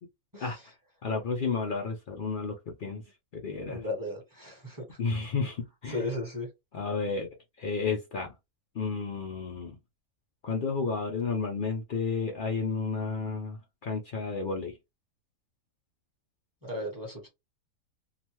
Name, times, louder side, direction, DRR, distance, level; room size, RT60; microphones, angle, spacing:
voice 1, 1.0-3.0 3.3-3.8 5.0-6.0 6.7-7.3 7.6-8.3 8.7-9.8 10.4-14.8, left 4 dB, 90° left, 0.4 m, -32 dB
voice 2, 3.7-5.0 5.9-6.5 16.6-17.3, left 1 dB, 15° right, 0.9 m, -35 dB
2.9 x 2.2 x 2.9 m
omnidirectional pair, 1.6 m